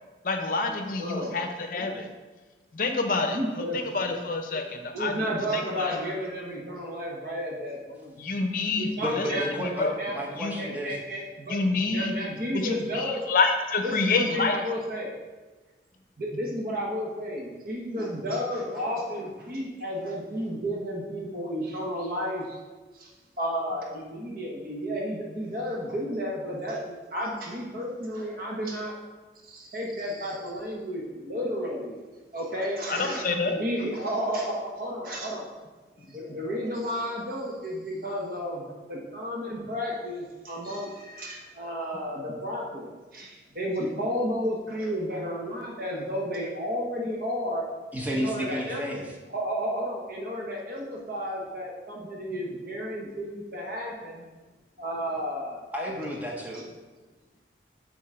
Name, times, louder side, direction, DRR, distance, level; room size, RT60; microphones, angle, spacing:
voice 1, 0.2-2.1 2.7-6.0 8.2-9.3 9.6-9.9 10.4-10.5 11.5-12.1 12.5-14.6 32.9-33.6, left 3 dB, 50° left, 5 dB, 0.7 m, -28 dB
voice 2, 1.0-1.4 3.3-3.8 4.0-4.1 4.9-8.2 8.8-9.5 10.0-10.1 10.6-13.2 13.8-15.1 16.2-22.6 22.9-28.9 29.4-32.0 32.3-35.5 36.1-47.6 48.1-48.8 49.3-54.3 54.8-55.6, equal, 55° right, -2 dB, 1.1 m, -32 dB
voice 3, 9.0-11.0 47.9-49.1 55.7-56.7, equal, 10° right, -2 dB, 1.0 m, -32 dB
7.5 x 4.0 x 4.9 m, 1.3 s
head